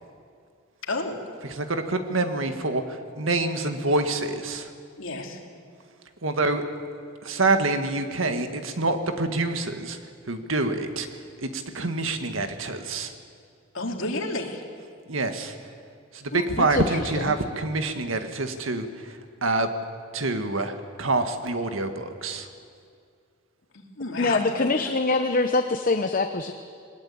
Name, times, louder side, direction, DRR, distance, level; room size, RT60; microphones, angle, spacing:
voice 1, 0.8-1.2 5.0-5.4 13.7-14.6 16.3-16.5 24.0-24.9, left 2 dB, 85° left, 1 dB, 3.0 m, -31 dB
voice 2, 1.6-4.7 6.2-6.6 7.2-10.0 10.3-11.1 11.4-13.1 15.1-15.5 16.1-18.8 19.4-19.7 20.1-22.5, right 2 dB, 85° right, 7 dB, 1.8 m, -26 dB
voice 3, 16.6-17.3 24.2-26.5, left 3 dB, 45° left, 7 dB, 0.8 m, -24 dB
21.0 x 20.0 x 8.6 m, 2.3 s
head